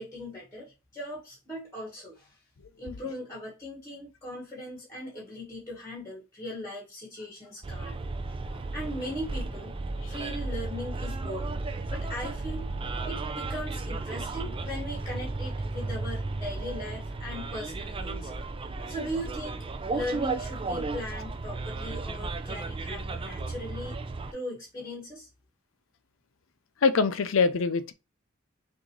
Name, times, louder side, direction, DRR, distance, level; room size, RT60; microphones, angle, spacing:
voice 1, 0.0-2.4 2.8-7.9 8.5-9.7 10.1-11.6 11.9-12.7 13.0-18.3 18.9-23.9 24.3-25.3, left 1 dB, 15° left, 1.5 m, -39 dB
Bus, 7.6-24.3, right 3 dB, 25° right, 0.4 m, -34 dB
voice 2, 26.8-27.9, left 4 dB, 80° left, 0.6 m, -23 dB
6.2 x 2.6 x 3.1 m
head